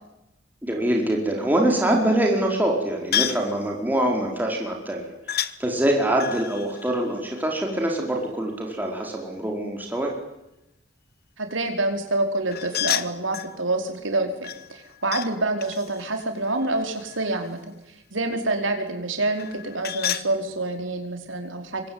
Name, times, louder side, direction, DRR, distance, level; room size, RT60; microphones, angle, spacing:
voice 1, 0.6-10.1, right 1 dB, 10° right, 0 dB, 4.6 m, -24 dB
sound 1, 3.1-3.5 5.3-5.6 6.2-8.0 12.5-13.6 14.4-15.3 15.6-17.5 19.4-20.3, left 10 dB, 55° left, 1.2 m, -30 dB
voice 2, 11.4-17.7 18.1-21.8, right 2 dB, 80° right, 5 dB, 4.7 m, -27 dB
25.0 x 23.5 x 9.6 m, 0.89 s
head